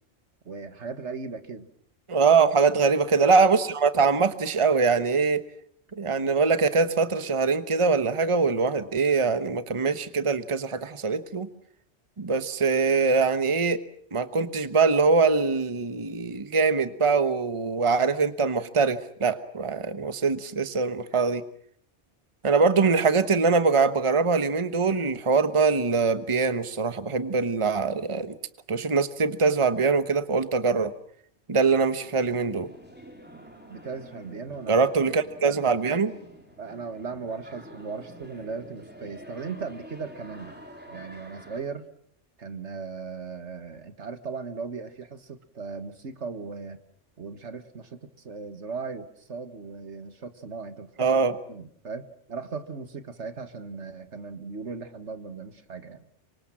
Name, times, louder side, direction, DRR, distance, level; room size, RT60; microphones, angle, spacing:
voice 1, 0.5-1.7 33.7-34.8 36.6-40.6 40.9-41.9 42.4-46.8 47.2-51.2 51.5-56.0, right 4 dB, 70° right, 10 dB, 1.9 m, -37 dB
voice 2, 2.1-5.4 5.9-11.5 12.2-13.8 14.1-21.4 22.4-28.4 28.7-30.9 31.5-32.7 34.7-36.1 51.0-51.3, right 4 dB, 25° right, 12 dB, 1.1 m, -23 dB
sound 1, 31.9-41.6, equal, 10° right, 4.1 m, -48 dB
27.0 x 24.5 x 7.5 m, 0.64 s
omnidirectional pair, 1.2 m